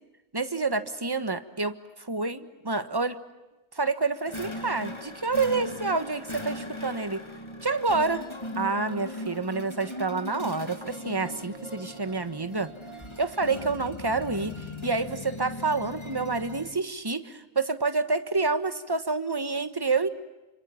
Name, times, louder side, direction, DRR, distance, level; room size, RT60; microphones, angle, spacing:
voice 1, 0.3-1.7 2.0-3.2 3.7-7.2 7.6-8.2 8.5-12.7 13.2-20.1, right 3 dB, 15° right, 11 dB, 1.3 m, -28 dB
sound 1, 4.3-16.8, left 1 dB, 20° left, 2.3 m, -39 dB
29.5 x 27.0 x 7.2 m, 1.1 s
omnidirectional pair, 1.5 m